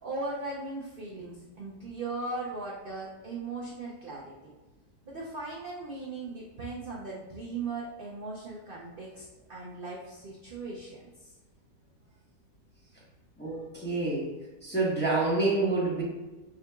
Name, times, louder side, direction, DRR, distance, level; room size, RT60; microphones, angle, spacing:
voice 1, 0.0-4.5 5.0-11.3, right 3 dB, 60° right, -4 dB, 0.5 m, -38 dB
voice 2, 13.4-14.3 14.6-16.0, right 2 dB, 10° left, -6 dB, 0.8 m, -27 dB
4.9 x 3.7 x 2.3 m, 1.2 s
omnidirectional pair, 1.8 m